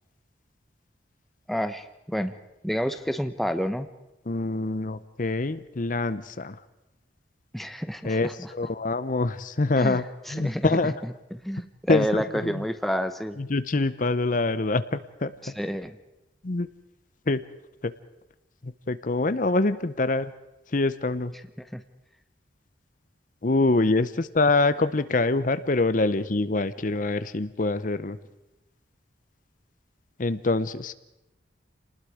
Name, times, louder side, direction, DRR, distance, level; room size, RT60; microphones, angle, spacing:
voice 1, 1.5-2.3 2.6-3.9 7.5-8.5 9.8-13.4 15.4-16.0 21.6-21.8, equal, ahead, 9 dB, 0.8 m, -30 dB
voice 2, 4.3-6.6 8.0-10.0 10.3-10.9 11.9-12.6 13.4-15.3 16.4-16.7 17.3-17.4 17.8-17.9 18.6-20.3 20.7-21.3 23.4-28.2 30.2-30.9, left 3 dB, 45° left, 13 dB, 0.7 m, -25 dB
28.5 x 20.0 x 5.0 m, 0.95 s
head